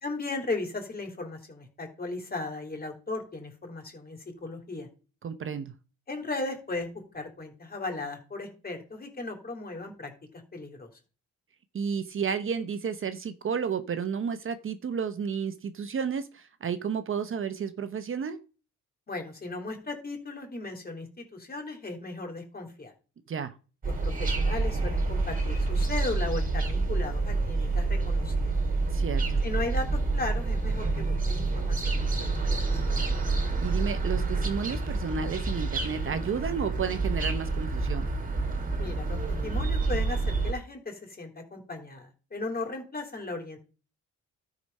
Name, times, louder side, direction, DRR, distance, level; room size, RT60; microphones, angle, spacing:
voice 1, 0.0-4.9 6.1-6.9 7.1-10.9 19.1-22.9 24.0-28.5 29.4-32.6 32.8-33.0 38.8-43.6, left 3 dB, 30° left, 3 dB, 3.6 m, -36 dB
voice 2, 5.2-5.7 11.7-18.4 23.3-23.6 28.9-29.4 33.6-38.1, right 6 dB, 45° right, 11 dB, 0.9 m, -32 dB
sound 1, 23.8-40.5, right 3 dB, 25° right, 2.6 m, -28 dB
12.5 x 5.1 x 5.5 m, 0.36 s
cardioid pair, 90°, 30 cm